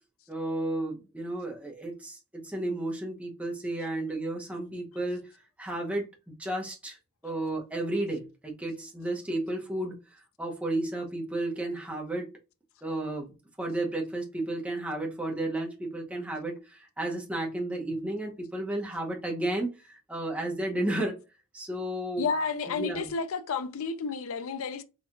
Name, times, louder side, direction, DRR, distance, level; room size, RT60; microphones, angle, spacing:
voice 1, 0.3-5.3 5.6-12.3 12.8-21.2 21.5-22.3 22.7-23.1, right 1 dB, 5° right, 0.8 m, -33 dB
voice 2, 22.2-24.8, left 5 dB, 65° left, 0.4 m, -31 dB
4.4 x 2.3 x 2.5 m
head